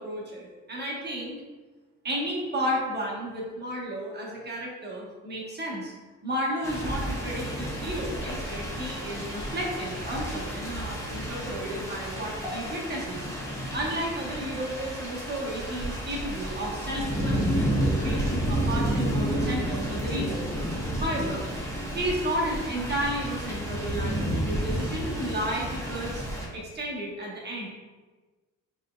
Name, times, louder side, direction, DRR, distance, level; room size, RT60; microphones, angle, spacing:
voice 1, 0.0-1.4 2.0-5.9 6.2-13.3 13.7-20.5 21.0-21.4 21.9-26.2 26.5-27.7, right 1 dB, 35° right, -4 dB, 1.4 m, -33 dB
sound 1, 6.6-26.5, equal, 10° left, 1.2 m, -31 dB
5.5 x 3.3 x 2.4 m, 1.3 s
cardioid pair, 90°, 30 cm